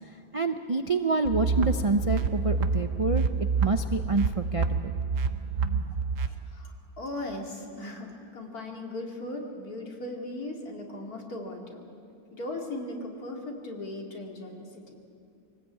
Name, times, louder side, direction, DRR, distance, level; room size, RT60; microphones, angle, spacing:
voice 1, 0.3-3.2 3.6-4.9, right 3 dB, 40° right, 7 dB, 0.4 m, -27 dB
sound 1, 1.2-6.3, right 5 dB, 60° right, 1.3 m, -28 dB
voice 2, 6.3-11.8 12.3-15.0, left 1 dB, 70° left, 0 dB, 3.2 m, -38 dB
24.0 x 18.5 x 8.8 m, 2.6 s
omnidirectional pair, 1.6 m